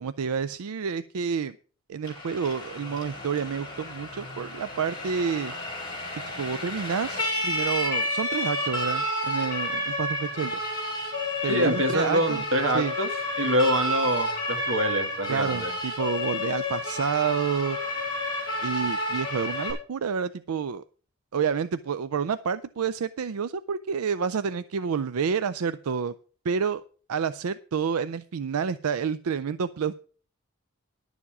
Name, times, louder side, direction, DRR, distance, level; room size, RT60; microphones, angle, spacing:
voice 1, 0.0-1.6 1.9-5.5 6.4-10.6 11.4-12.4 12.7-12.9 15.3-17.8 18.6-20.8 21.3-26.1 26.4-26.8 27.1-30.0, right 6 dB, 90° right, 14 dB, 0.4 m, -29 dB
Siren, 2.0-19.7, left 1 dB, 20° left, 4.9 m, -31 dB
voice 2, 11.5-13.1 13.4-15.7, equal, 65° right, 5 dB, 2.0 m, -25 dB
11.0 x 7.2 x 6.0 m, 0.42 s
head